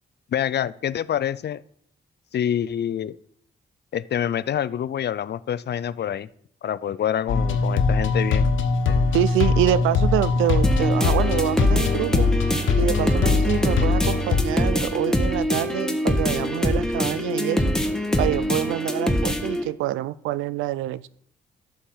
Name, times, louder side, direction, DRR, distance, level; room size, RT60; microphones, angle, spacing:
voice 1, 0.3-1.6 2.3-3.2 3.9-6.3 6.6-8.5, left 9 dB, 55° left, 18 dB, 0.5 m, -26 dB
sound 1, 7.3-14.4, left 4 dB, 70° left, 1.2 m, -22 dB
voice 2, 9.1-12.3 12.8-17.6 18.2-21.1, right 14 dB, 85° right, 19 dB, 0.4 m, -26 dB
sound 2, 10.6-19.6, left 1 dB, 5° left, 1.5 m, -24 dB
11.0 x 7.1 x 4.5 m, 0.65 s
hypercardioid pair, 40°, 20 cm